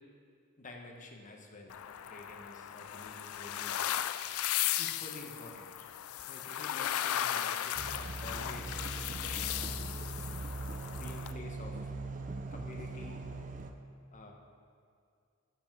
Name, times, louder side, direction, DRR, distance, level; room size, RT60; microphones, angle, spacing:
voice 1, 0.6-3.8 4.1-4.3 4.8-5.9 6.3-9.0 9.4-10.0 10.9-11.9 12.5-13.2 14.1-14.3, left 2 dB, 35° left, 1 dB, 1.1 m, -49 dB
sound 1, 1.7-11.3, left 11 dB, 75° left, 0.4 m, -36 dB
sound 2, 7.7-13.7, right 2 dB, 35° right, 0.6 m, -40 dB
8.2 x 7.1 x 6.1 m, 2.3 s
head